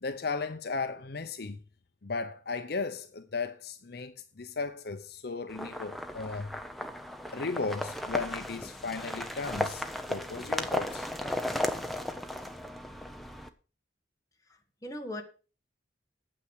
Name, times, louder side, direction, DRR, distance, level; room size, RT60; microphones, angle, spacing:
voice 1, 0.0-1.6 2.0-6.5 7.3-11.1, left 4 dB, 55° left, 0.7 m, -36 dB
sound 1, 5.5-13.5, left 1 dB, ahead, 0.7 m, -35 dB
voice 2, 14.4-15.2, left 1 dB, 15° left, 1.5 m, -40 dB
8.9 x 7.9 x 6.4 m
head